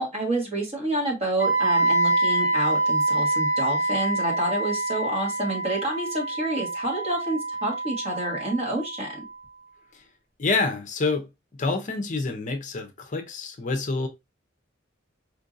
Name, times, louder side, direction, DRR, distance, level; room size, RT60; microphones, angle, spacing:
voice 1, 0.0-9.2, right 1 dB, 30° right, 1.4 m, -28 dB
Wind instrument woodwind instrument, 1.4-9.3, right 2 dB, 80° right, 2.4 m, -26 dB
voice 2, 10.4-11.2 11.6-14.1, left 3 dB, 40° left, 0.6 m, -27 dB
4.5 x 2.6 x 2.5 m
head